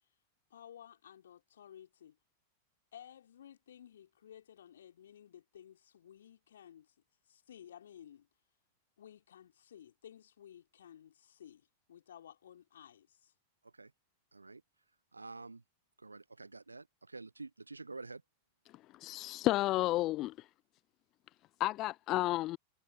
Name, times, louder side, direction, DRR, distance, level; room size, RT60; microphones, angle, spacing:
voice 1, 0.5-2.2 2.9-6.9 7.3-8.3 9.0-13.3, left 9 dB, 65° left, 3.6 m, -55 dB
voice 2, 15.1-15.6 16.0-18.2, right 3 dB, 80° right, 0.5 m, -48 dB
voice 3, 18.9-20.5 21.6-22.6, left 17 dB, 35° left, 0.3 m, -32 dB
figure-of-eight pair, 90°, 0 cm